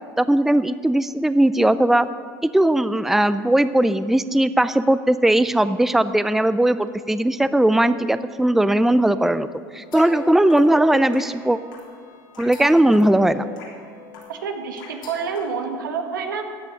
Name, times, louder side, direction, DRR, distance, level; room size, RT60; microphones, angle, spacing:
voice 1, 0.2-2.1 2.5-9.5 9.7-11.6 12.4-13.5, right 1 dB, 5° right, 13 dB, 0.5 m, -18 dB
sound 1, 9.8-15.4, left 4 dB, 85° left, 3.4 m, -40 dB
voice 2, 14.3-16.4, right 5 dB, 90° right, 5 dB, 1.5 m, -28 dB
13.5 x 8.3 x 7.7 m, 2.1 s
hypercardioid pair, 80°, 10 cm